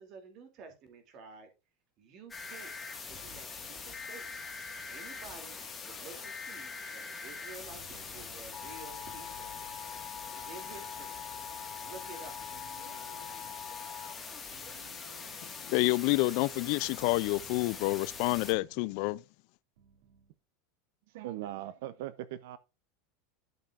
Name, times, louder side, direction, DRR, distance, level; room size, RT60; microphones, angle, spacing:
voice 1, 0.0-1.5 2.0-2.8 3.1-4.4 4.9-5.6 5.8-9.5 10.3-11.2 11.8-12.4, right 4 dB, 35° right, 2.6 m, -50 dB
sound 1, 2.3-18.5, left 5 dB, 10° left, 1.6 m, -42 dB
sound 2, 12.5-13.7 14.5-15.6 16.5-17.6 18.5-19.0 19.8-20.3, right 5 dB, 85° right, 3.4 m, -59 dB
voice 2, 15.4-19.2, left 22 dB, 50° left, 0.3 m, -29 dB
voice 3, 21.1-22.6, right 13 dB, 65° right, 0.6 m, -39 dB
12.0 x 6.6 x 2.4 m
supercardioid pair, 170°, 0 cm